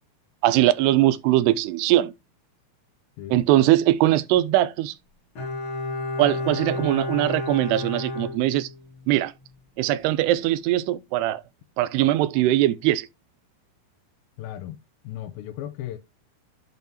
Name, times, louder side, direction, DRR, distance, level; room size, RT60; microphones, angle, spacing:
voice 1, 0.4-2.1 3.3-4.9 6.2-8.7 9.1-9.3 9.8-11.4 11.8-13.1, right 15 dB, 90° right, 2.7 m, -21 dB
Bowed string instrument, 5.3-9.1 9.4-9.5, left 2 dB, 40° left, 2.1 m, -31 dB
voice 2, 14.4-16.0, left 12 dB, 80° left, 2.3 m, -36 dB
10.5 x 5.5 x 2.8 m
omnidirectional pair, 4.6 m